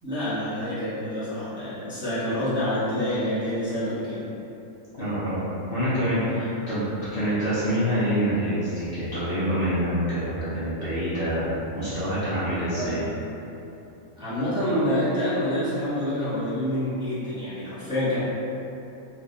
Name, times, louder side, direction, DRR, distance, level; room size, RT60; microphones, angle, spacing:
voice 1, 0.0-4.2 12.7-13.1 14.2-18.2, left 1 dB, 5° right, -13 dB, 0.8 m, -27 dB
voice 2, 5.0-5.4 5.7-11.5 11.8-13.1, equal, 50° left, -13 dB, 0.8 m, -26 dB
3.3 x 2.6 x 2.6 m, 2.9 s
omnidirectional pair, 1.4 m